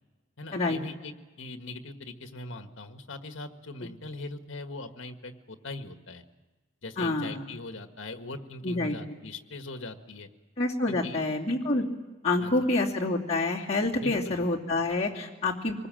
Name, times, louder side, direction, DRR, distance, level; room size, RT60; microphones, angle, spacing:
voice 1, 0.4-6.2 6.8-10.3 10.9-11.2 12.4-12.5 14.0-14.4, left 2 dB, 65° left, 7 dB, 1.6 m, -41 dB
voice 2, 7.0-7.5 8.6-9.0 10.6-11.9 12.2-15.9, left 2 dB, 30° left, -4 dB, 2.7 m, -27 dB
25.5 x 20.0 x 7.7 m, 1.2 s
head